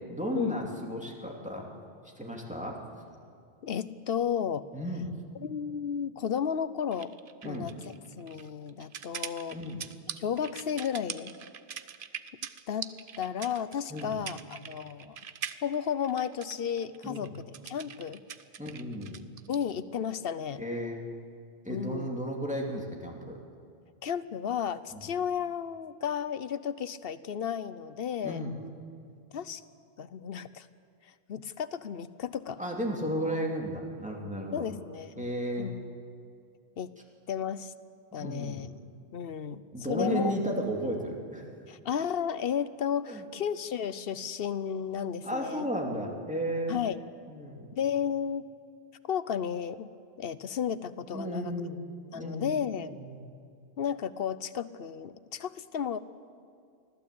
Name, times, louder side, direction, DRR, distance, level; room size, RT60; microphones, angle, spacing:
voice 1, 0.1-1.7 2.2-2.8 4.7-5.1 7.4-7.7 9.5-9.8 13.9-14.1 17.0-17.3 18.6-19.2 20.6-21.0 21.6-23.4 24.9-25.0 28.2-28.5 32.6-34.7 35.2-35.7 38.2-38.7 39.7-41.5 43.1-43.2 45.2-46.8 47.3-47.7 51.1-51.8 52.1-52.5 52.9-53.2, equal, 5° right, -1 dB, 2.9 m, -34 dB
voice 2, 3.6-4.7 5.4-7.1 7.4-7.7 8.2-9.6 10.2-11.3 12.7-15.2 15.6-17.3 17.7-18.2 19.5-20.6 21.7-22.1 24.0-28.4 29.3-29.6 30.0-30.7 31.3-32.6 34.5-35.2 35.6-35.8 36.8-36.9 37.3-37.7 38.1-38.7 39.1-39.6 39.9-40.3 41.7-45.7 46.7-47.0 47.7-48.5 49.1-49.9 50.2-51.5 52.1-53.0 53.8-56.0, left 8 dB, 65° left, 15 dB, 0.9 m, -33 dB
sound 1, 6.9-19.6, right 7 dB, 55° right, 0.9 m, -42 dB
24.5 x 16.0 x 8.5 m, 2.4 s
omnidirectional pair, 1.1 m